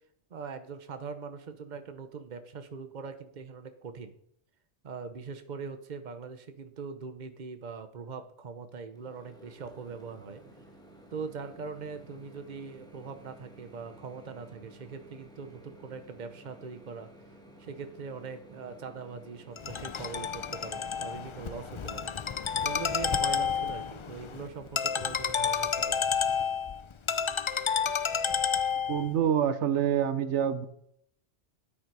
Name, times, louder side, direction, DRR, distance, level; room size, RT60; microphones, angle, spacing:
voice 1, 0.3-4.1 4.8-10.5 11.1-17.1 17.6-22.1 22.6-26.1, right 5 dB, 45° right, 9 dB, 1.0 m, -42 dB
Microwave oven, 8.9-25.2, right 1 dB, 5° left, 1.8 m, -54 dB
Ringtone, 19.6-29.1, left 7 dB, 55° left, 0.3 m, -30 dB
voice 2, 28.9-30.7, right 9 dB, 85° right, 11 dB, 1.1 m, -26 dB
9.4 x 9.0 x 4.8 m, 0.69 s
omnidirectional pair, 1.2 m